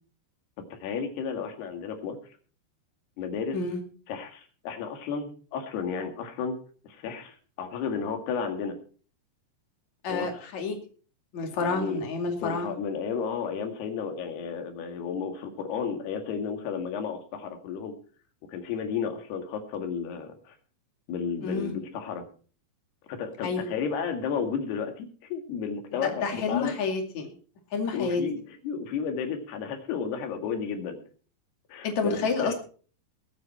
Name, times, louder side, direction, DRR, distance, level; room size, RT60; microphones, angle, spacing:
voice 1, 0.7-2.2 3.2-3.6 4.1-6.6 6.8-8.8 10.1-10.3 11.6-12.0 12.4-18.0 18.5-20.6 21.1-22.3 23.1-26.8 27.8-31.0 31.7-32.5, left 6 dB, 70° left, 5 dB, 3.9 m, -33 dB
voice 2, 10.0-10.8 11.3-12.7 21.4-21.7 23.4-23.7 26.0-27.3 27.7-28.2 31.8-32.5, left 4 dB, 45° left, 4 dB, 3.3 m, -29 dB
21.0 x 8.5 x 4.4 m, 0.41 s
omnidirectional pair, 4.9 m